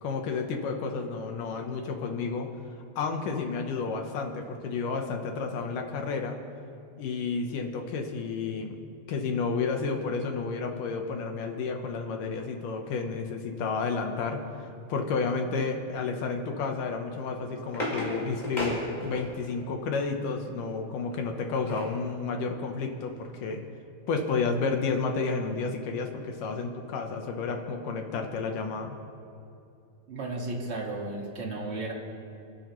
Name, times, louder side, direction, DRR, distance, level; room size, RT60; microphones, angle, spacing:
voice 1, 0.0-2.5 3.0-6.4 7.0-8.8 9.1-23.6 24.1-29.0, left 4 dB, 70° left, 3 dB, 2.4 m, -31 dB
sound 1, 17.1-19.6 21.1-22.0 22.5-22.6 22.9-23.1, left 1 dB, 10° left, 3.9 m, -34 dB
voice 2, 30.1-31.9, right 2 dB, 40° right, -1 dB, 0.9 m, -34 dB
30.0 x 10.5 x 3.1 m, 2.6 s
omnidirectional pair, 4.4 m